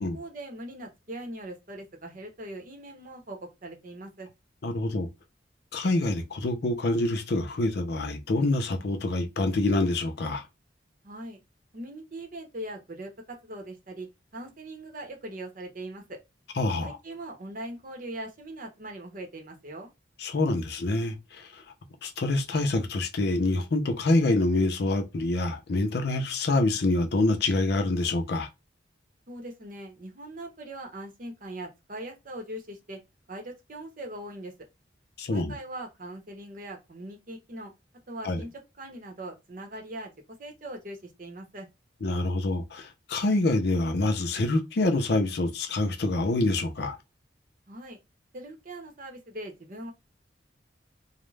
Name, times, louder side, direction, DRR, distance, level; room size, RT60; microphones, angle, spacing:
voice 1, 0.1-4.3 11.0-11.4 11.7-14.1 14.3-16.2 16.8-19.9 29.3-33.0 33.3-34.5 35.3-37.7 38.1-38.5 38.8-40.1 40.4-41.7 47.7-48.0 48.3-49.9, right 1 dB, 45° right, 0.8 m, -40 dB
voice 2, 4.6-5.1 5.7-10.4 16.6-17.0 20.2-21.6 22.0-28.5 35.2-35.5 38.2-38.4 42.0-47.0, left 2 dB, 60° left, 0.5 m, -26 dB
2.3 x 2.1 x 3.1 m
head